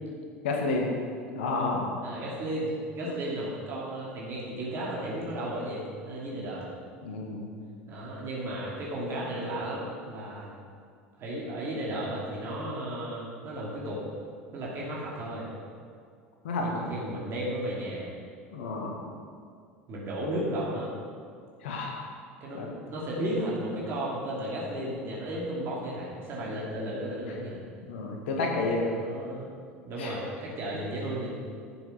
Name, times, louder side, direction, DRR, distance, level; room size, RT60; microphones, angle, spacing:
voice 1, 0.4-0.9 1.4-1.9 3.0-3.1 7.0-7.4 16.4-16.8 18.5-18.9 21.6-22.0 22.5-22.7 26.6-26.7 27.9-28.9 30.0-30.1, left 3 dB, 65° left, 0 dB, 1.9 m, -30 dB
voice 2, 2.0-6.7 7.9-10.5 11.2-14.0 14.5-15.5 16.6-18.1 19.9-20.9 22.4-27.6 28.8-29.5 29.8-31.3, right 1 dB, 40° right, -6 dB, 2.9 m, -34 dB
11.5 x 7.8 x 5.8 m, 2.2 s
figure-of-eight pair, 70°, 7 cm